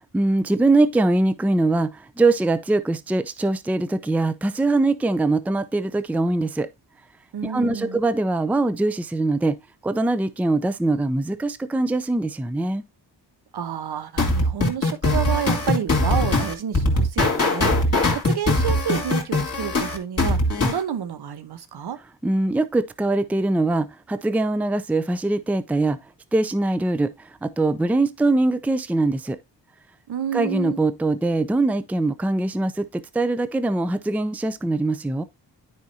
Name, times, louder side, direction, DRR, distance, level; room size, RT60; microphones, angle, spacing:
voice 1, 0.1-6.7 7.4-9.6 9.8-12.8 22.2-26.0 26.3-27.1 27.4-29.4 30.3-35.2, right 2 dB, 5° right, 0.5 m, -22 dB
voice 2, 7.3-8.0 13.5-17.7 18.1-20.4 20.7-22.0 30.1-30.8, right 8 dB, 60° right, 1.0 m, -29 dB
sound 1, 14.2-20.8, left 2 dB, 35° left, 2.5 m, -21 dB
9.3 x 5.0 x 2.7 m
cardioid pair, 60°, 43 cm